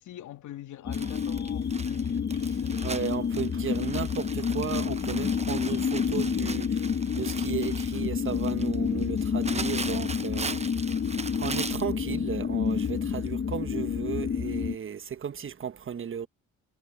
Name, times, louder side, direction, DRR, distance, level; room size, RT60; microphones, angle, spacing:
voice 1, 0.0-2.9, left 13 dB, 80° left, 2.8 m, -44 dB
sound 1, 0.8-14.7, left 6 dB, 35° left, 0.8 m, -29 dB
Crumpling crinkling, 0.9-11.9 12.8-12.9 13.3-13.4, right 4 dB, 20° right, 0.9 m, -39 dB
voice 2, 2.8-6.8 7.1-10.6 11.4-16.3, right 8 dB, 45° right, 1.3 m, -34 dB
cardioid pair, 90°, 30 cm